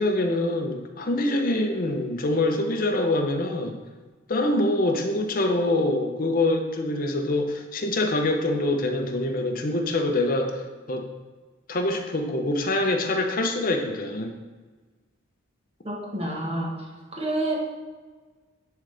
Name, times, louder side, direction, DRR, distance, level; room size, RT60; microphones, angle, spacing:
voice 1, 0.0-3.8 4.3-11.1 11.7-14.3, left 2 dB, 40° left, 4 dB, 0.7 m, -25 dB
voice 2, 15.8-16.8 17.1-17.6, right 1 dB, 30° right, -2 dB, 1.2 m, -28 dB
10.5 x 3.8 x 3.4 m, 1.3 s
head